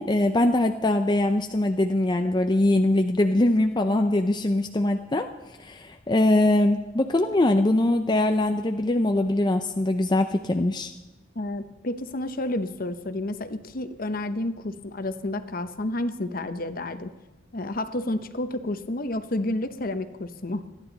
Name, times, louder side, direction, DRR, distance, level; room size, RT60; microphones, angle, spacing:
voice 1, 0.0-5.3 5.6-10.9, left 1 dB, 20° left, 5 dB, 0.5 m, -22 dB
voice 2, 11.3-17.1 17.5-20.7, left 1 dB, 45° left, 10 dB, 0.9 m, -30 dB
26.5 x 11.0 x 4.0 m, 1.1 s
head